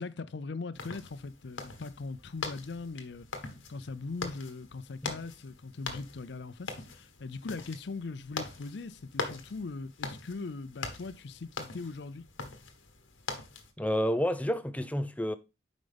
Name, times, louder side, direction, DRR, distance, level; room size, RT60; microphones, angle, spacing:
voice 1, 0.0-3.3 3.7-12.2, left 3 dB, 60° left, 0.5 m, -40 dB
sound 1, 0.7-13.7, left 4 dB, 90° left, 1.2 m, -42 dB
voice 2, 13.8-15.3, equal, 5° left, 0.5 m, -29 dB
7.7 x 5.1 x 3.5 m
head